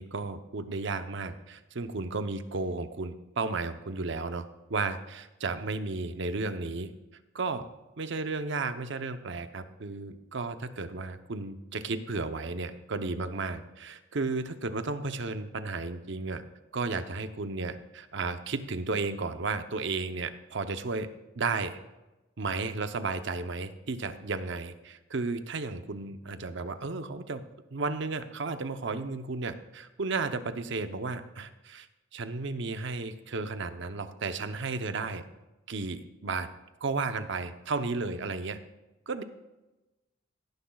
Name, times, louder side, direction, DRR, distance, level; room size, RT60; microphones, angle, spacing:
voice 1, 0.0-6.9 7.3-7.7 8.0-16.4 16.7-21.1 21.3-21.8 22.4-27.4 27.7-31.9 32.1-35.3 35.7-36.5 36.8-38.6 39.1-39.2, right 3 dB, 65° right, 9 dB, 0.7 m, -33 dB
17.0 x 10.0 x 2.3 m, 1.0 s
head